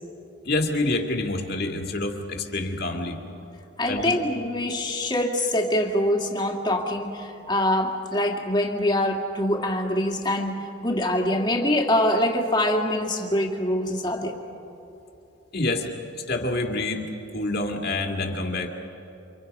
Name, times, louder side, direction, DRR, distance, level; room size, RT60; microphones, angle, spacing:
voice 1, 0.4-3.2 3.9-4.2 15.5-15.9 16.3-18.7, left 2 dB, 50° left, 2 dB, 2.3 m, -27 dB
voice 2, 3.8-14.4, left 1 dB, 20° left, 2 dB, 2.0 m, -24 dB
29.5 x 26.0 x 5.4 m, 2.9 s
head